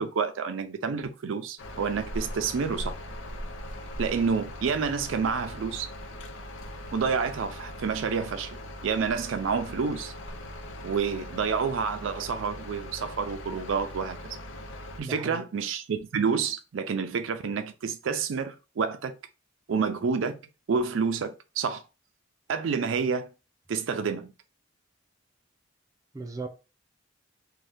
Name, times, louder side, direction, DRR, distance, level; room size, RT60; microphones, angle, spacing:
voice 1, 0.0-2.9 4.0-5.9 6.9-8.6 8.8-10.1 10.8-14.4 15.0-19.1 19.7-20.4 20.7-21.8 22.5-23.3 23.7-24.3, right 5 dB, 80° right, 0.4 m, -29 dB
sound 1, 1.6-15.0, equal, 80° left, 0.5 m, -40 dB
voice 2, 15.0-15.4 26.1-26.5, right 3 dB, 20° right, 0.4 m, -37 dB
2.7 x 2.2 x 3.3 m
head